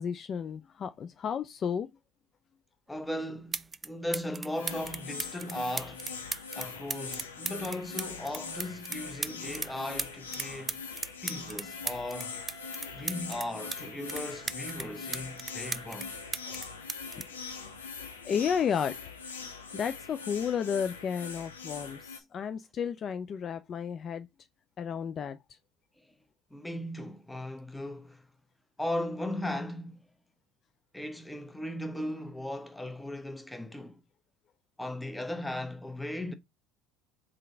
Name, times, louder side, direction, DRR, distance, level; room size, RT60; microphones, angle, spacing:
voice 1, 0.0-1.9 16.5-16.6 18.2-19.0 19.7-24.3 24.8-25.4, left 7 dB, 40° left, 0.4 m, -32 dB
voice 2, 2.9-6.1 6.6-10.8 11.2-12.4 12.9-16.2 19.7-19.8 26.0-26.1 26.5-28.3 28.8-30.1 30.9-34.0 34.8-36.3, left 1 dB, 10° left, 0.9 m, -37 dB
sound 1, 3.0-3.1 3.5-3.9 4.1-9.7 10.0-13.8 14.1-16.1 16.3-18.2 19.1-19.3, right 4 dB, 25° right, 0.4 m, -37 dB
sound 2, 4.5-22.2, left 5 dB, 85° left, 0.8 m, -42 dB
Wind instrument woodwind instrument, 11.6-16.6, right 1 dB, 60° left, 1.2 m, -54 dB
3.8 x 3.4 x 3.8 m
hypercardioid pair, 70°, 0 cm